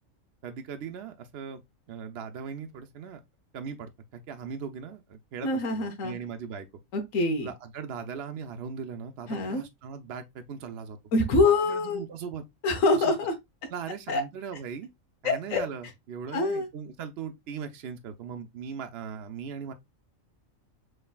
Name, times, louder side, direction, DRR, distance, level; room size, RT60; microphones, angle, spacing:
voice 1, 0.4-1.6 1.9-3.2 3.5-6.7 7.4-11.0 11.4-12.4 12.9-13.1 13.7-14.9 15.2-19.7, right 6 dB, 60° right, 0.8 m, -39 dB
voice 2, 5.4-6.2 6.9-7.5 9.3-9.6 11.1-12.0 12.6-13.3 14.1-14.2 15.2-15.6 16.3-16.7, left 3 dB, 85° left, 1.3 m, -25 dB
5.5 x 3.2 x 2.3 m
omnidirectional pair, 1.4 m